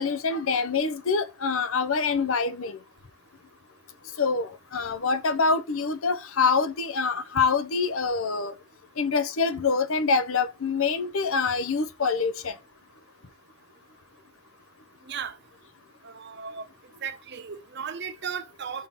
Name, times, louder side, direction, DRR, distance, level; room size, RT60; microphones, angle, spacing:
voice 1, 0.0-2.8 4.2-8.5 9.0-12.5, left 4 dB, 70° left, 0.7 m, -25 dB
voice 2, 15.1-15.4 16.0-16.6 17.0-18.9, right 7 dB, 50° right, 0.8 m, -35 dB
5.6 x 3.7 x 5.9 m
head